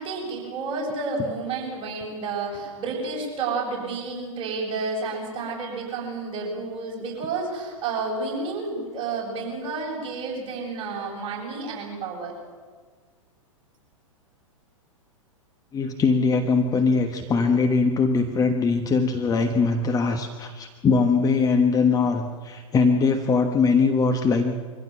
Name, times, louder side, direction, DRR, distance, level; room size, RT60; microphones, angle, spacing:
voice 1, 0.0-12.3, right 3 dB, 30° right, -3 dB, 7.9 m, -30 dB
voice 2, 15.7-24.6, left 4 dB, 20° left, 5 dB, 1.3 m, -21 dB
24.0 x 15.0 x 7.6 m, 1.5 s
figure-of-eight pair, 105°, 18 cm